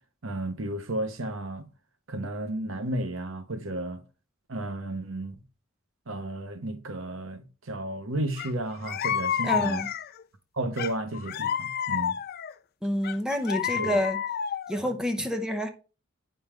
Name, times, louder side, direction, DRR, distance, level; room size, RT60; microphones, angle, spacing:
voice 1, 0.2-1.7 2.1-4.0 4.5-5.3 6.1-9.8 10.6-12.1 13.7-14.0, right 1 dB, 70° right, 1.0 m, -33 dB
sound 1, 8.4-8.5 8.8-10.2 10.8-12.5 13.0-14.8, left 8 dB, 45° left, 0.4 m, -30 dB
voice 2, 9.4-9.9 12.8-14.2 14.7-15.7, equal, 5° right, 0.8 m, -28 dB
8.6 x 5.5 x 3.3 m
head